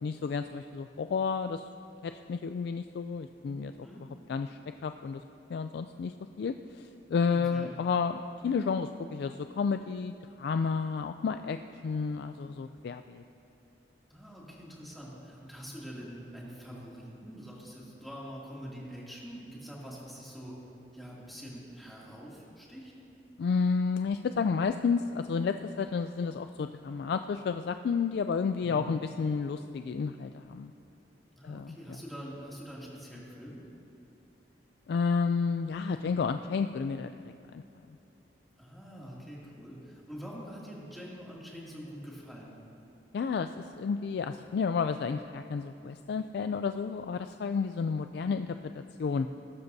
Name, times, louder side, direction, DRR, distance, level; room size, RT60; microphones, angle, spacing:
voice 1, 0.0-1.6 2.0-3.7 4.3-5.2 5.5-11.6 11.8-13.2 23.4-30.7 31.4-31.8 34.9-37.1 37.5-37.6 43.1-48.5 49.0-49.3, left 5 dB, 65° left, 8 dB, 0.3 m, -31 dB
voice 2, 7.3-7.7 14.1-20.5 20.9-22.9 28.6-29.0 31.4-33.6 38.6-42.5, equal, ahead, -6 dB, 2.5 m, -45 dB
20.0 x 12.0 x 2.7 m, 2.7 s
head